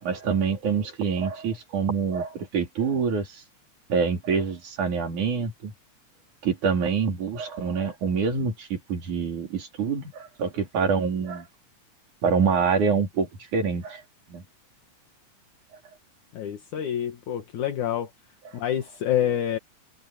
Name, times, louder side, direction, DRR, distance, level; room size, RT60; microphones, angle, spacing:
voice 1, 0.0-3.4 3.9-5.7 6.4-11.5 12.2-14.0 14.3-14.4 18.5-18.6, right 5 dB, 70° right, 4.8 m, -26 dB
voice 2, 16.3-18.1 18.5-19.6, left 10 dB, 70° left, 2.9 m, -27 dB
omnidirectional pair, 3.7 m